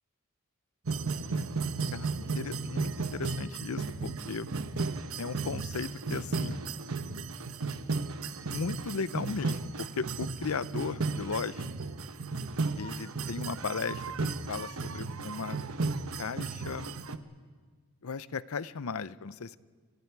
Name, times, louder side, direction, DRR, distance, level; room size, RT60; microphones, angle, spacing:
sound 1, 0.9-17.2, right 4 dB, 75° right, 1.0 m, -34 dB
voice 1, 1.9-4.5 5.2-6.6 8.5-11.8 12.8-15.6 16.2-16.9 18.0-19.6, left 4 dB, 80° left, 16 dB, 0.6 m, -36 dB
28.5 x 26.0 x 4.7 m, 1.5 s
head